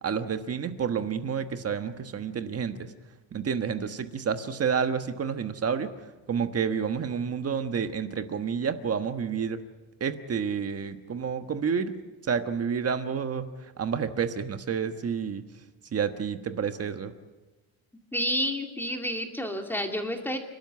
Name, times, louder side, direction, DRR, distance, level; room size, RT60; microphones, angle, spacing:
voice 1, 0.0-2.9 3.3-5.9 6.3-9.6 10.0-12.0 12.3-15.4 15.9-17.1, right 6 dB, 30° right, 8 dB, 1.3 m, -29 dB
voice 2, 18.1-20.4, equal, 5° left, 3 dB, 2.4 m, -30 dB
29.0 x 12.5 x 9.5 m, 1.2 s
cardioid pair, 145°, 46 cm